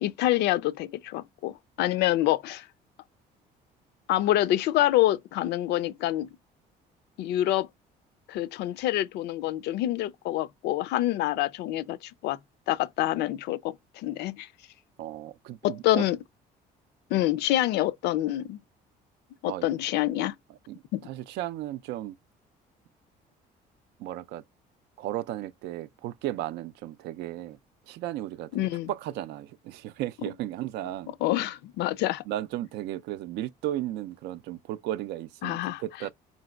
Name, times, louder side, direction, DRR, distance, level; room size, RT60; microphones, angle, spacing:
voice 1, 0.0-2.7 4.1-6.3 7.2-7.7 8.3-12.4 12.7-14.5 15.6-16.2 17.1-18.6 19.4-20.4 20.9-21.0 28.5-28.9 31.2-32.2 35.4-35.8, left 14 dB, 80° left, 0.4 m, -26 dB
voice 2, 15.0-16.1 19.5-19.7 20.5-22.2 24.0-24.4 25.0-27.6 27.9-31.1 32.3-36.1, right 13 dB, 85° right, 0.4 m, -35 dB
4.1 x 3.9 x 2.2 m
cardioid pair, 110°, 17 cm